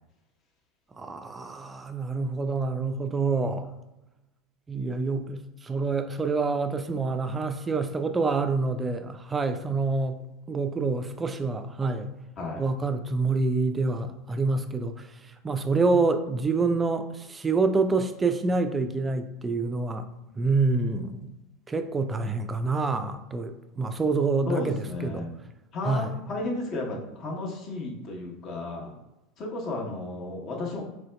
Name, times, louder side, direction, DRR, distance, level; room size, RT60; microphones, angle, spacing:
voice 1, 1.0-3.7 4.7-10.2 10.5-12.1 12.6-15.1 15.4-20.1 20.4-21.3 21.7-25.3 25.8-26.1, right 3 dB, 20° right, 0.3 m, -27 dB
voice 2, 24.4-25.3 25.7-28.9 29.4-30.8, left 2 dB, 45° left, 0.9 m, -33 dB
4.3 x 2.6 x 2.2 m
hypercardioid pair, 80°, 0 cm